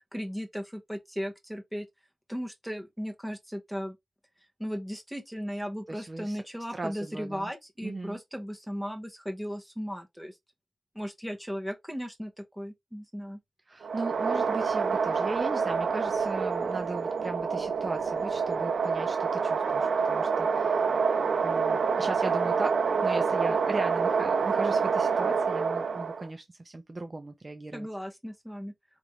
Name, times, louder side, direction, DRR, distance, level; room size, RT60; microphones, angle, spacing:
voice 1, 0.1-1.9 2.3-4.0 4.6-10.4 10.9-13.4 27.7-28.7, equal, 5° right, 1.1 m, -36 dB
voice 2, 5.9-6.4 6.7-7.5 7.8-8.2 13.7-20.9 21.4-27.9, right 2 dB, 30° right, 0.5 m, -37 dB
sound 1, 13.8-26.3, right 5 dB, 85° right, 0.6 m, -27 dB
5.1 x 3.0 x 3.1 m
wide cardioid pair, 160°, 0 cm